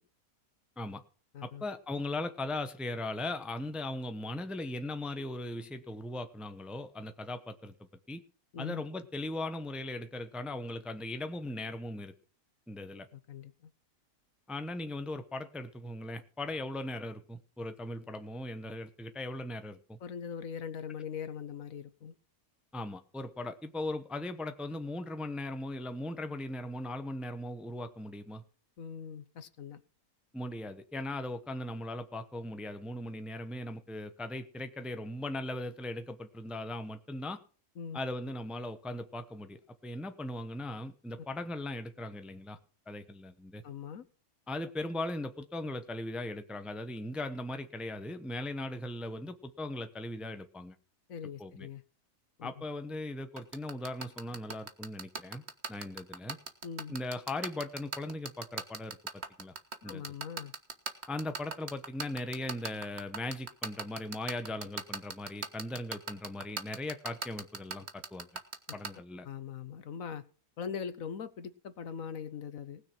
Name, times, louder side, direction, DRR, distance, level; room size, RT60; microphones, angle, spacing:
voice 1, 1.4-7.7 8.1-8.2 8.6-12.1 12.7-13.1 14.5-20.0 22.7-28.4 30.3-37.4 37.9-42.6 42.9-43.6 44.5-50.7 51.4-51.7 52.4-55.4 55.7-56.4 56.9-59.5 59.8-60.0 61.1-68.3 68.7-69.3, left 1 dB, ahead, 8 dB, 0.8 m, -38 dB
voice 2, 13.1-13.5 20.0-22.1 28.8-29.8 37.8-38.0 43.6-44.0 51.1-51.8 52.4-52.5 56.6-56.9 59.8-60.5 69.2-70.2 70.6-72.8, left 7 dB, 65° left, 12 dB, 1.4 m, -41 dB
sound 1, 53.4-68.9, right 5 dB, 45° right, 1.6 m, -36 dB
19.0 x 6.5 x 6.0 m, 0.39 s
omnidirectional pair, 1.5 m